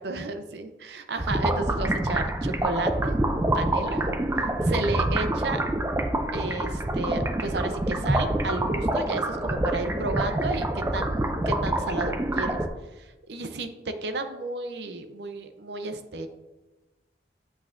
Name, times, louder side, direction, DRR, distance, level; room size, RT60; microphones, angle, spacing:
voice 1, 0.0-3.1 3.5-4.0 4.4-5.6 6.3-12.6 13.0-16.3, right 3 dB, 75° right, 8 dB, 0.6 m, -32 dB
sound 1, 1.2-12.7, right 1 dB, 15° right, 0.4 m, -26 dB
8.3 x 6.4 x 2.5 m, 1.1 s
head